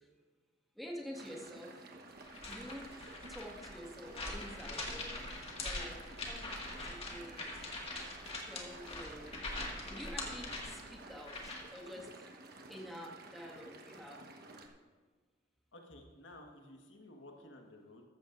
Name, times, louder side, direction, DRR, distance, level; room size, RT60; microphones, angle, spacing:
voice 1, 0.8-1.7 2.5-2.9 3.3-5.1 5.6-6.5 6.8-7.6 8.5-9.5 9.9-12.1 12.7-14.2, equal, ahead, -2 dB, 1.9 m, -48 dB
sound 1, 1.1-14.7, right 2 dB, 55° right, 1.3 m, -53 dB
sound 2, 2.2-11.8, left 2 dB, 35° left, 1.9 m, -43 dB
voice 2, 15.7-18.0, left 1 dB, 80° left, 2 dB, 1.5 m, -54 dB
14.0 x 13.5 x 2.6 m, 1.5 s
head